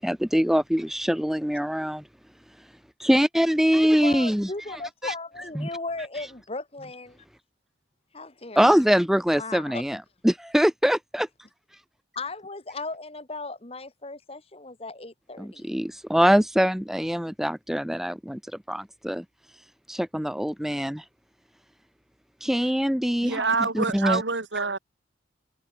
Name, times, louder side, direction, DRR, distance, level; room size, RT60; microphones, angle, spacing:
voice 1, 0.0-2.0 3.0-4.5 5.0-5.1 5.6-5.7 8.6-10.0 10.2-11.3 15.4-18.4 18.7-19.2 19.9-21.0 22.4-23.4 23.7-24.2, equal, ahead, 0.4 m, -23 dB
voice 2, 4.0-7.2 8.1-8.9 9.3-9.8 12.1-15.8, left 3 dB, 30° left, 1.5 m, -36 dB
voice 3, 23.2-24.8, right 4 dB, 75° right, 2.5 m, -26 dB
head